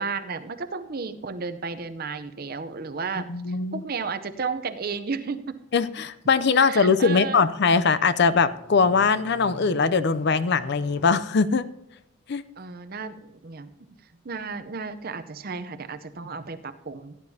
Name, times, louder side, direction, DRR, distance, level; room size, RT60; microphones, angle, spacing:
voice 1, 0.0-5.6 6.6-7.4 12.6-13.9 14.2-17.2, right 5 dB, 45° right, 10 dB, 0.6 m, -33 dB
voice 2, 3.3-3.8 5.7-11.7 12.3-12.4, left 5 dB, 55° left, 14 dB, 0.5 m, -21 dB
sound 1, 3.9-4.4 4.9-5.1 5.6-5.8 6.1-6.6 7.0-7.1 7.6-11.2, equal, 35° left, 3.2 m, -47 dB
16.5 x 9.7 x 2.8 m, 0.84 s
head